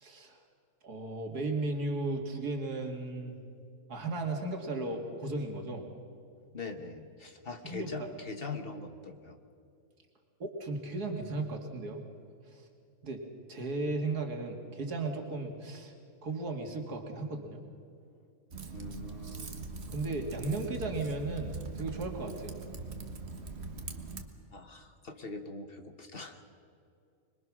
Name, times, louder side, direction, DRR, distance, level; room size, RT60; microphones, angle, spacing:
voice 1, 0.0-0.4 0.8-3.4 3.9-5.8 7.6-8.1 10.4-12.0 12.5-12.6 13.0-13.2 13.5-15.9 16.2-17.6 19.9-22.6, right 2 dB, 90° right, 3 dB, 2.7 m, -35 dB
voice 2, 6.5-9.4 18.7-19.5 24.5-26.4, left 3 dB, 40° left, 6 dB, 1.3 m, -42 dB
Typing, 18.5-24.3, right 3 dB, 45° right, 1.5 m, -42 dB
25.5 x 22.0 x 6.1 m, 2.4 s
omnidirectional pair, 1.6 m